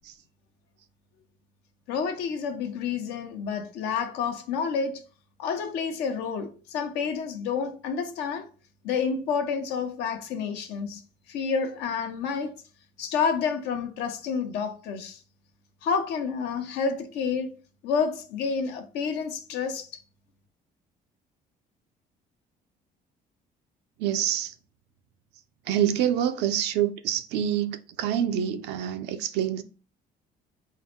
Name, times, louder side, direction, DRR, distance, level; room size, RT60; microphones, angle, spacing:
voice 1, 1.9-5.0 5.4-8.5 8.8-11.0 11.3-12.6 13.0-15.2 15.8-17.5 17.8-20.0, left 6 dB, 85° left, 0.8 m, -29 dB
voice 2, 24.0-24.5 25.7-29.6, right 10 dB, 90° right, 0.6 m, -26 dB
3.7 x 2.2 x 4.4 m
cardioid pair, 110°, 17 cm